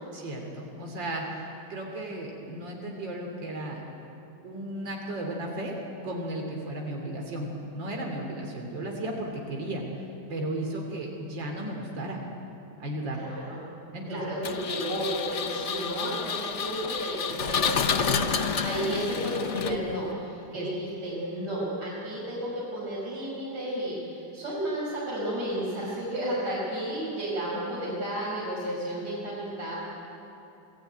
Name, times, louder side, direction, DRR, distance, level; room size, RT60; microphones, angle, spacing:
voice 1, 0.1-3.8 4.4-5.8 6.0-9.8 10.3-12.2 12.8-13.3 13.9-14.3 20.5-20.7, right 1 dB, 90° right, 0 dB, 3.7 m, -34 dB
voice 2, 13.1-13.6 14.1-29.8, right 1 dB, 65° right, -8 dB, 6.6 m, -32 dB
Engine, 14.4-20.1, left 6 dB, 45° left, 1.1 m, -29 dB
28.0 x 18.5 x 9.3 m, 2.8 s
omnidirectional pair, 2.0 m